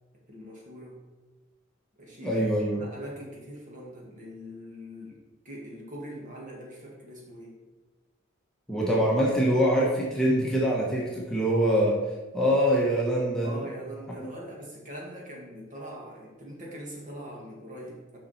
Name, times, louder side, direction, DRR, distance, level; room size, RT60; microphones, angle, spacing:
voice 1, 0.1-1.0 2.0-2.4 2.7-5.2 5.4-7.5 13.4-18.2, equal, 40° right, -2 dB, 2.0 m, -42 dB
voice 2, 2.2-2.8 8.7-12.0 12.3-13.6, equal, 5° left, -5 dB, 1.3 m, -24 dB
7.3 x 5.8 x 4.3 m, 1.2 s
head